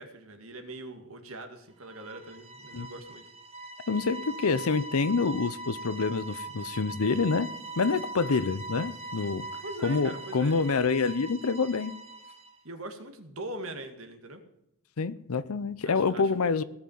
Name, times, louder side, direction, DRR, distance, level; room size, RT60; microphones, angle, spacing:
voice 1, 0.0-3.2 8.2-8.5 9.6-10.9 12.6-14.4 15.8-16.5, right 2 dB, 65° right, 7 dB, 2.0 m, -42 dB
sound 1, 1.8-12.6, right 2 dB, 25° right, 1.2 m, -41 dB
voice 2, 3.9-7.5 7.8-9.5 9.8-11.9 15.0-16.6, left 4 dB, 75° left, 15 dB, 0.6 m, -27 dB
17.0 x 6.0 x 9.3 m, 0.87 s
head